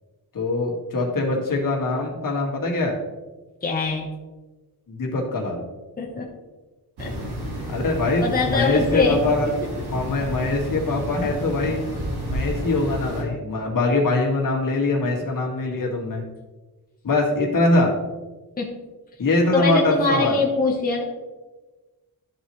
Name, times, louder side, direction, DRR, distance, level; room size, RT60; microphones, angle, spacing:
voice 1, 0.3-3.0 4.9-5.6 7.7-9.5 9.9-11.8 12.3-16.2 17.0-18.0 19.2-20.4, left 2 dB, 55° left, -1 dB, 1.9 m, -23 dB
voice 2, 3.6-4.1 6.0-6.3 7.0-7.2 8.2-9.2 18.6-18.7 19.5-21.0, left 3 dB, 25° left, -2 dB, 1.1 m, -23 dB
sound 1, 7.0-13.2, equal, 85° right, 2.1 m, -30 dB
12.5 x 4.1 x 3.1 m, 1.2 s
wide cardioid pair, 105°, 38 cm